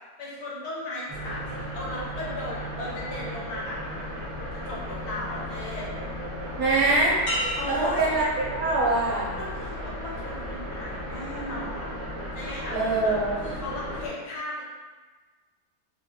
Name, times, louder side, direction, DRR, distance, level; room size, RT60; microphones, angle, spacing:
voice 1, 0.2-4.2 4.5-5.9 7.6-8.1 9.3-12.0 12.3-14.6, left 1 dB, 70° left, -5 dB, 1.2 m, -36 dB
sound 1, 1.1-14.1, equal, 45° right, 0.4 m, -35 dB
voice 2, 6.6-7.2 7.7-9.3 12.7-13.3, right 2 dB, 70° right, -4 dB, 0.9 m, -24 dB
sound 2, 7.3-9.0 9.5-10.0, equal, 90° left, 1.5 m, -34 dB
3.0 x 2.4 x 2.6 m, 1.3 s
omnidirectional pair, 1.8 m